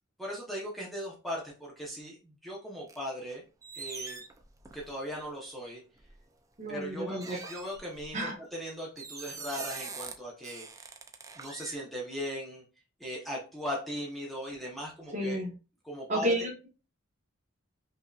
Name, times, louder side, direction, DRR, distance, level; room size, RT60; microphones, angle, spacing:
voice 1, 0.2-3.4 3.7-4.2 4.7-5.8 6.7-10.9 11.4-12.6 13.0-15.4 15.8-16.4, equal, ahead, -4 dB, 0.9 m, -38 dB
sound 1, 2.9-3.4 3.6-5.1 6.0-6.2 7.2-8.3 9.0-10.1 10.4-11.8, right 4 dB, 15° right, 0.4 m, -43 dB
voice 2, 6.6-7.4 8.1-8.4 9.5-9.6 15.1-15.5 16.1-16.7, equal, 35° right, -1 dB, 1.2 m, -31 dB
5.5 x 2.7 x 2.4 m, 0.33 s
head